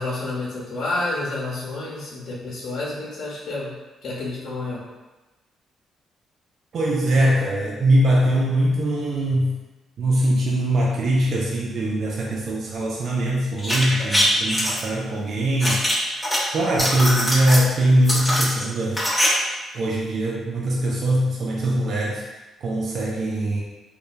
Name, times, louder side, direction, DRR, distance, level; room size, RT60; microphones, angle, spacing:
voice 1, 0.0-3.7 4.0-4.8, left 2 dB, 65° left, -6 dB, 0.7 m, -29 dB
voice 2, 6.7-9.5 10.0-15.8 16.5-19.0 19.7-22.2 22.6-23.6, right 1 dB, 60° right, -3 dB, 0.4 m, -21 dB
sound 1, 13.6-14.8 15.6-16.4 16.7-17.6 18.1-19.3 19.5-19.6, equal, 5° left, 0.9 m, -22 dB
3.1 x 2.2 x 2.3 m, 1.1 s
cardioid pair, 90°, 0 cm